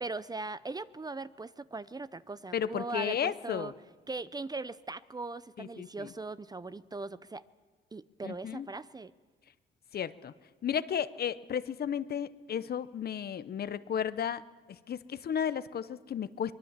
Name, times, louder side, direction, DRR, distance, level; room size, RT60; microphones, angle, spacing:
voice 1, 0.0-3.7 4.1-7.5 7.9-9.1, right 3 dB, 20° right, 16 dB, 0.6 m, -39 dB
voice 2, 2.5-3.7 5.6-6.1 8.2-8.7 9.9-10.3 10.6-14.4 14.7-16.5, left 8 dB, 50° left, 15 dB, 0.9 m, -33 dB
23.5 x 20.5 x 7.4 m, 1.4 s
cardioid pair, 90°, 20 cm